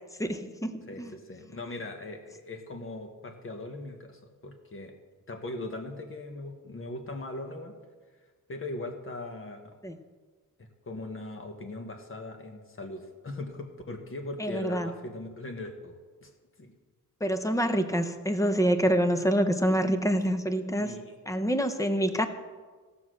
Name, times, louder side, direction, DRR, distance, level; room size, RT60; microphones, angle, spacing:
voice 1, 0.2-1.1 9.8-10.0 14.4-14.9 17.2-20.9 21.3-22.3, equal, 10° left, 9 dB, 0.7 m, -26 dB
voice 2, 0.9-4.9 5.3-7.7 8.5-9.7 10.6-16.3 16.6-16.7 20.8-21.2, left 2 dB, 40° left, 4 dB, 1.4 m, -40 dB
16.5 x 6.0 x 6.3 m, 1.4 s
wide cardioid pair, 160°, 34 cm